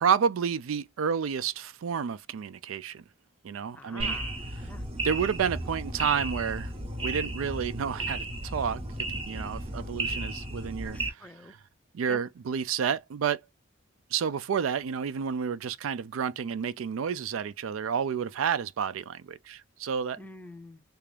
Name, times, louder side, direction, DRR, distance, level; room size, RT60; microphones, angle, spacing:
voice 1, 0.0-3.0 3.4-4.2 5.0-6.7 7.0-8.8 9.1-11.6 11.9-13.4 14.1-20.2, right 7 dB, 90° right, 0.4 m, -30 dB
voice 2, 3.7-4.8 10.9-11.6 12.1-12.2 20.2-20.8, left 1 dB, 5° left, 0.4 m, -46 dB
sound 1, 4.0-11.1, right 2 dB, 30° right, 0.7 m, -34 dB
3.4 x 2.4 x 3.3 m
head